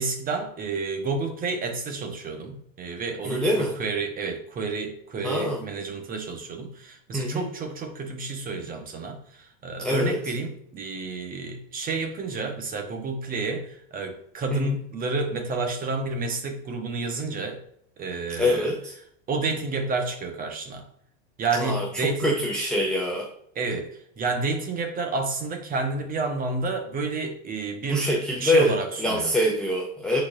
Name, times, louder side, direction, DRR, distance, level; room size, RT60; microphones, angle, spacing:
voice 1, 0.0-17.6 18.0-18.7 19.3-20.8 21.4-22.4 23.5-28.1 28.4-29.3, right 3 dB, 20° right, 4 dB, 1.1 m, -30 dB
voice 2, 3.2-3.7 5.2-5.6 7.1-7.5 9.8-10.2 14.5-14.8 18.4-18.9 21.6-21.9 22.2-23.3 27.9-30.2, left 1 dB, ahead, -1 dB, 0.4 m, -24 dB
9.3 x 4.2 x 2.6 m, 0.70 s
supercardioid pair, 140°, 39 cm